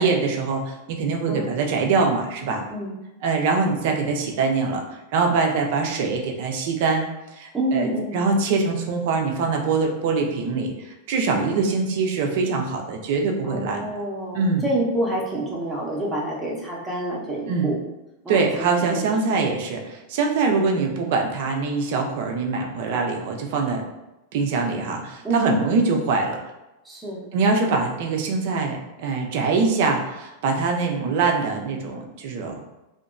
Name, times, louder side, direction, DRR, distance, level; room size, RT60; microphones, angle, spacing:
voice 1, 0.0-2.6 3.2-4.8 5.1-7.0 7.3-13.9 14.3-14.6 17.5-17.7 18.3-23.8 24.3-26.4 27.3-32.6, right 4 dB, 50° right, 2 dB, 0.4 m, -23 dB
voice 2, 1.3-1.6 2.7-2.9 7.5-8.3 11.3-11.7 13.4-17.8 18.2-19.1 19.4-19.6 25.2-25.6 26.8-27.3, right 1 dB, 10° right, -5 dB, 0.7 m, -27 dB
2.8 x 2.1 x 2.4 m, 0.97 s
figure-of-eight pair, 90°, 0 cm